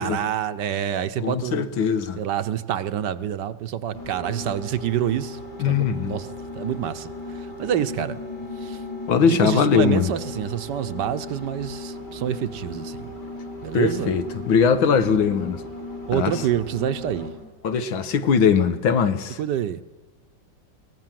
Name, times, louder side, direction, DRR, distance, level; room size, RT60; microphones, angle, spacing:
voice 1, 0.0-1.7 2.2-6.3 6.5-8.2 8.6-8.8 9.2-13.1 13.6-14.1 16.1-17.3 19.4-19.8, right 10 dB, 65° right, 1.4 m, -27 dB
voice 2, 1.2-2.2 5.6-6.2 9.1-10.1 13.7-15.6 16.1-16.4 17.6-19.4, left 6 dB, 85° left, 2.0 m, -21 dB
sound 1, 3.9-17.5, left 2 dB, 60° left, 5.0 m, -36 dB
23.0 x 18.0 x 7.6 m
omnidirectional pair, 2.1 m